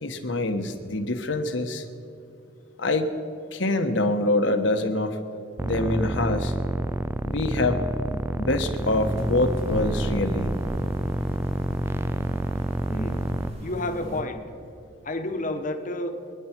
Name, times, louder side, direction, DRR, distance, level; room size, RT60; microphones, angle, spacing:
voice 1, 0.0-1.8 2.8-3.1 3.5-5.2 5.6-6.5 7.2-10.5, left 2 dB, 70° left, 6 dB, 1.3 m, -25 dB
sound 1, 5.6-13.5, right 1 dB, 10° right, 0.3 m, -28 dB
sound 2, 8.7-14.2, equal, 35° right, 1.7 m, -39 dB
voice 2, 12.9-14.5 15.0-16.2, left 1 dB, 40° left, 6 dB, 1.3 m, -31 dB
24.5 x 10.5 x 4.6 m, 2.6 s
head